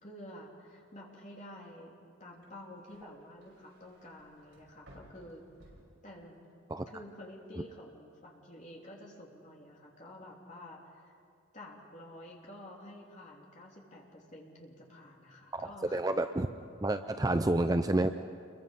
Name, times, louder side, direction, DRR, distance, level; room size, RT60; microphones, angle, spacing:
voice 1, 0.0-5.4 6.0-6.5 6.9-11.1 11.5-16.0 17.2-17.3, left 1 dB, 35° left, -2 dB, 3.4 m, -50 dB
sound 1, 2.3-6.6 6.9-7.5, equal, 65° right, 5.9 m, -60 dB
voice 2, 15.5-16.5 16.8-18.1, right 1 dB, 15° right, 9 dB, 0.5 m, -29 dB
28.5 x 22.5 x 5.4 m, 2.3 s
head